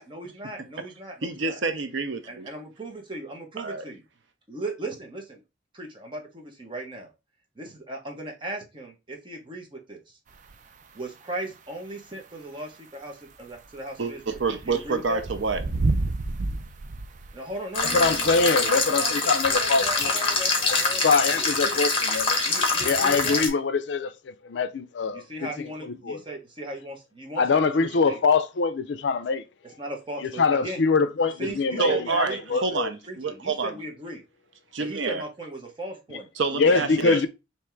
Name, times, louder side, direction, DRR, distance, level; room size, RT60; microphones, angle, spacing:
voice 1, 0.0-1.6 2.3-4.0 4.5-5.4 5.7-7.1 7.6-10.2 10.9-15.2 17.3-21.8 22.4-23.4 25.1-28.2 29.6-30.8 31.4-32.8 33.1-34.2 34.8-36.3 36.6-37.2, right 2 dB, 25° right, 1.1 m, -37 dB
voice 2, 1.2-2.5 3.6-3.8 14.0-15.6 31.8-33.7 34.7-35.2 36.4-37.3, right 4 dB, 75° right, 0.7 m, -28 dB
sound 1, 10.3-10.6 12.4-12.5 13.5-17.7 19.3-19.4 20.3-20.4 20.8-20.9 21.6-21.7, right 2 dB, 40° right, 0.4 m, -30 dB
sound 2, 17.7-23.5, left 3 dB, 30° left, 1.1 m, -25 dB
voice 3, 17.9-20.2 20.6-20.8 21.0-22.4 22.8-25.5 26.0-26.2 27.4-29.4 30.4-32.2 32.5-32.9 36.5-37.3, left 4 dB, 65° left, 0.4 m, -23 dB
3.5 x 2.9 x 4.4 m
head